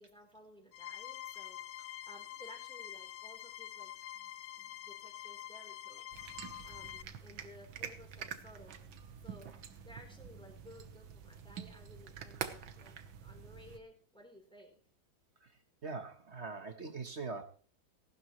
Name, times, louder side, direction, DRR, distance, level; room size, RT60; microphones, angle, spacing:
voice 1, 0.0-6.1 6.6-8.8 9.2-12.9 13.2-14.8, equal, ahead, 2 dB, 3.7 m, -57 dB
sound 1, 0.7-7.0, left 12 dB, 70° left, 1.4 m, -46 dB
sound 2, 6.1-13.8, right 8 dB, 85° right, 1.9 m, -47 dB
voice 2, 15.8-17.4, right 4 dB, 40° right, 7 dB, 1.3 m, -42 dB
18.5 x 12.5 x 3.1 m, 0.42 s
omnidirectional pair, 2.1 m